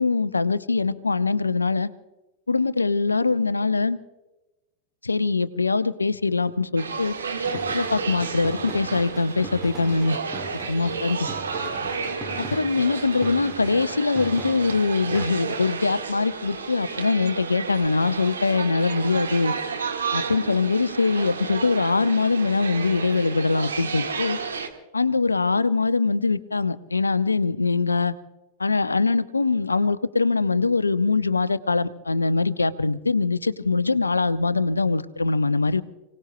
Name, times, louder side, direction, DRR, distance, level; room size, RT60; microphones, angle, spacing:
voice 1, 0.0-1.9 2.5-4.0 5.0-7.1 7.7-10.2 10.7-11.2 12.4-19.5 20.1-24.4 24.9-28.1 28.6-35.8, left 3 dB, 80° left, 15 dB, 0.6 m, -23 dB
sound 1, 6.8-24.7, right 5 dB, 70° right, 1.6 m, -32 dB
sound 2, 7.4-15.3, right 1 dB, 5° right, 1.8 m, -40 dB
30.0 x 18.5 x 2.2 m, 1.1 s
figure-of-eight pair, 90°, 0 cm